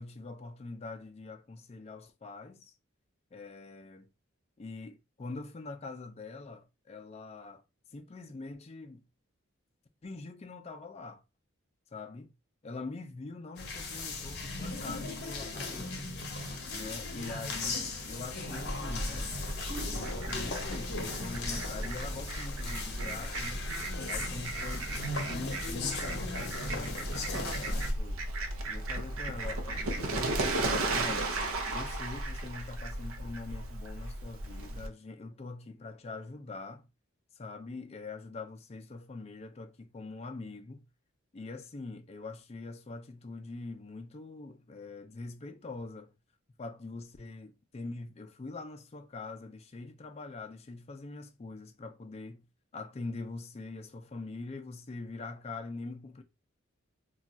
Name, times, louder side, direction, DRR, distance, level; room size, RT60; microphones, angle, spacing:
voice 1, 0.0-2.7 3.3-4.1 4.6-7.6 7.9-9.0 10.0-11.2 11.9-12.3 12.6-16.1 16.7-19.4 19.8-23.7 24.1-24.9 25.3-28.3 28.7-31.3 31.7-36.9 37.4-40.8 41.3-46.1 46.6-52.4 52.7-56.2, left 3 dB, 30° left, 0.4 m, -43 dB
sound 1, 13.6-27.9, left 3 dB, 55° left, 0.7 m, -38 dB
Fowl, 18.6-34.9, right 2 dB, 85° right, 0.6 m, -35 dB
2.4 x 2.3 x 3.9 m
head